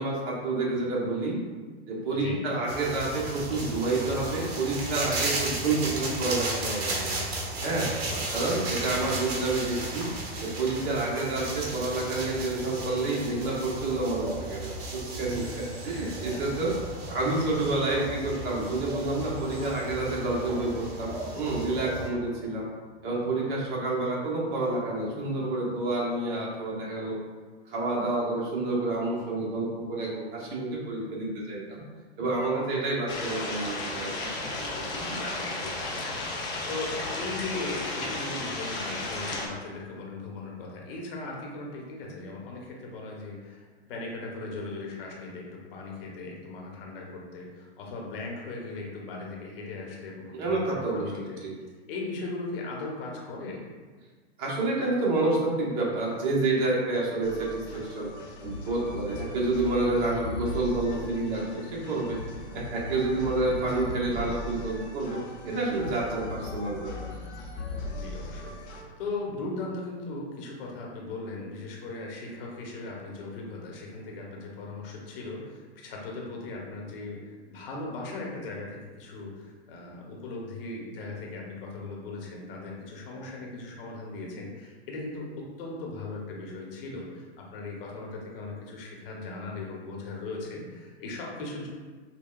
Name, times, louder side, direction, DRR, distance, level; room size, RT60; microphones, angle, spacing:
voice 1, 0.0-1.4 1.9-7.2 7.6-7.9 8.3-10.1 10.4-16.7 17.1-22.7 23.0-27.2 27.7-31.8 32.2-34.5 35.0-35.2 50.3-51.5 54.4-58.1 58.4-62.2 62.5-67.1, right 2 dB, 40° right, -4 dB, 1.1 m, -29 dB
sound 1, 2.7-22.1, right 2 dB, 65° right, 1.0 m, -35 dB
voice 2, 8.1-8.9 16.1-16.4 21.9-22.2 35.1-50.6 50.9-51.5 51.9-53.6 59.2-59.4 67.9-91.7, left 3 dB, 55° left, -2 dB, 1.0 m, -38 dB
sound 2, 33.1-39.5, left 2 dB, 15° left, 0.3 m, -33 dB
sound 3, 57.2-68.8, left 2 dB, 80° left, 0.8 m, -39 dB
5.8 x 2.2 x 2.4 m, 1.4 s
hypercardioid pair, 125°, 33 cm